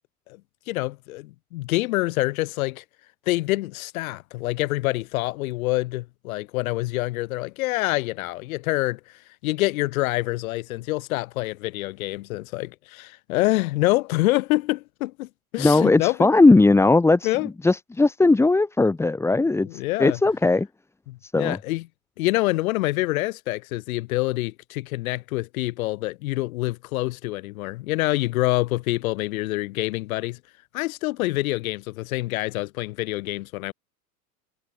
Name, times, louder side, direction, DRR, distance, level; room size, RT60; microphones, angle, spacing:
voice 1, 0.7-2.8 3.3-9.0 9.4-16.3 17.2-17.5 19.6-20.2 21.1-21.9 22.2-30.4 30.7-33.7, left 19 dB, 65° left, 1.2 m, -26 dB
voice 2, 15.6-20.7 21.2-21.6, left 3 dB, 5° left, 0.8 m, -18 dB
hypercardioid pair, 100°, 46 cm